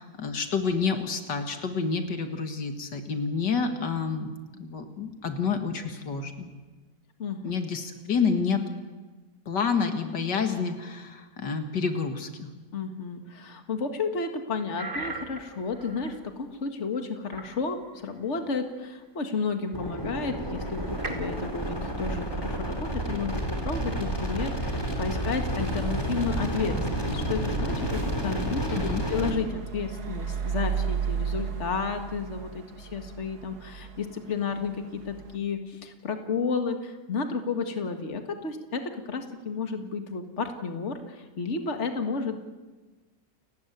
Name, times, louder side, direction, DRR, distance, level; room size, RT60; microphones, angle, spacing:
voice 1, 0.0-6.5 7.4-8.6 9.5-12.5 28.7-29.0, left 5 dB, 80° left, 6 dB, 2.5 m, -29 dB
voice 2, 7.2-7.5 12.7-28.8 29.1-42.4, left 4 dB, 40° left, 6 dB, 2.2 m, -32 dB
sound 1, 14.8-16.2 17.3-17.6 19.1-19.2 19.8-21.5, right 3 dB, 30° right, 2.8 m, -40 dB
sound 2, 19.7-29.3, right 1 dB, 15° left, 3.6 m, -30 dB
sound 3, 20.7-35.4, right 7 dB, 65° right, 1.9 m, -37 dB
30.0 x 14.0 x 9.5 m, 1.3 s
omnidirectional pair, 1.9 m